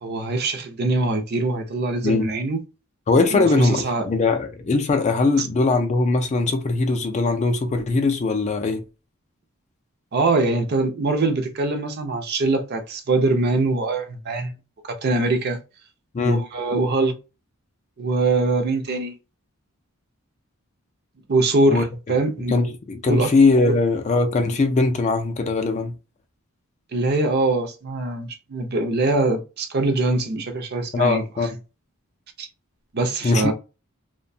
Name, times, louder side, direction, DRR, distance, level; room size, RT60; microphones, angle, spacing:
voice 1, 0.0-2.6 3.3-4.1 5.4-5.5 10.1-14.5 15.0-15.6 16.2-17.1 18.0-19.1 21.3-22.5 23.1-23.3 26.9-31.2 32.4-32.5 32.9-33.5, right 2 dB, 45° right, 0.5 m, -23 dB
voice 2, 3.1-8.8 16.1-16.4 21.7-21.8 22.5-25.9 30.9-31.6 33.2-33.5, left 3 dB, 30° left, 0.3 m, -20 dB
2.6 x 2.1 x 2.6 m
head